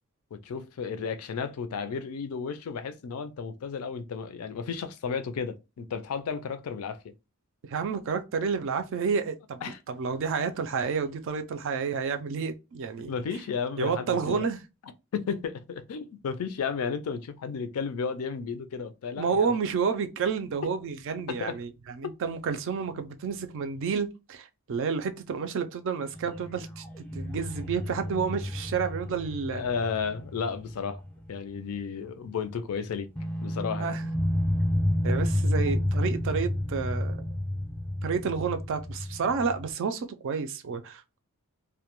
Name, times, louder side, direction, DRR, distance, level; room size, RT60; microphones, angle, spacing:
voice 1, 0.3-7.0 9.6-9.8 13.1-14.5 15.1-19.5 21.3-21.6 22.0-22.1 29.5-31.0 31.3-33.1 33.4-33.9, left 6 dB, 70° left, 0.4 m, -33 dB
voice 2, 7.7-9.6 9.9-13.1 13.8-14.6 19.2-26.8 27.1-29.7 33.8-34.0 35.0-37.3 38.0-41.2, right 5 dB, 60° right, 0.3 m, -30 dB
sound 1, 26.1-31.5 31.8-32.0 33.1-39.7, left 1 dB, 5° left, 0.4 m, -31 dB
2.2 x 2.1 x 2.9 m
head